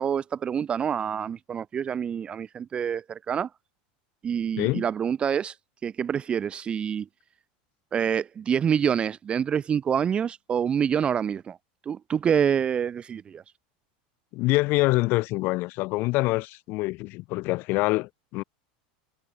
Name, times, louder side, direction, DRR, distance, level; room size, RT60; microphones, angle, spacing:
voice 1, 0.0-3.5 4.2-5.5 5.8-7.1 7.9-11.6 11.9-13.4, right 8 dB, 25° right, 0.7 m, -26 dB
voice 2, 14.3-18.4, left 22 dB, 50° left, 2.6 m, -25 dB
supercardioid pair, 135°, 5 cm